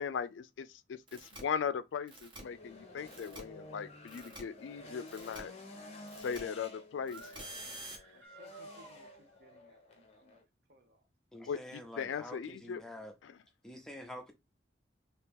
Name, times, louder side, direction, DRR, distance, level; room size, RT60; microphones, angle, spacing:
voice 1, 0.0-5.5 6.2-7.4 11.5-12.8 13.2-13.3, left 6 dB, 85° left, 0.3 m, -38 dB
sound 1, 1.1-1.4 2.1-2.4 3.1-3.4 4.1-4.4 5.1-5.4 6.1-6.4 7.1-8.0, right 2 dB, 25° right, 0.9 m, -48 dB
sound 2, 2.3-10.4, left 2 dB, 35° left, 0.8 m, -51 dB
sound 3, 7.0-9.6, right 3 dB, 85° right, 1.9 m, -57 dB
voice 2, 8.1-10.4 10.7-11.0, equal, 55° right, 0.6 m, -62 dB
voice 3, 11.3-13.1 13.6-14.3, left 1 dB, 5° left, 0.6 m, -47 dB
2.9 x 2.9 x 3.5 m
head